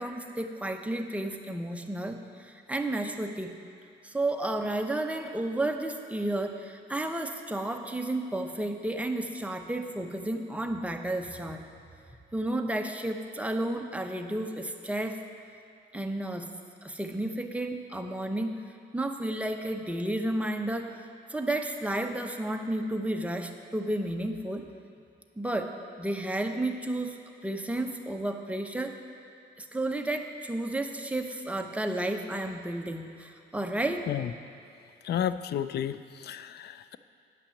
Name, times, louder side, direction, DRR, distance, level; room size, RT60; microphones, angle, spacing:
voice 1, 0.0-3.6 4.0-11.6 12.3-15.2 15.9-16.5 16.8-18.5 18.9-20.9 21.3-24.6 25.4-28.9 29.6-34.1, right 1 dB, 5° right, 4 dB, 0.8 m, -32 dB
voice 2, 35.0-37.0, left 10 dB, 55° left, 14 dB, 0.4 m, -32 dB
9.5 x 5.9 x 7.1 m, 2.6 s
cardioid pair, 90°, 20 cm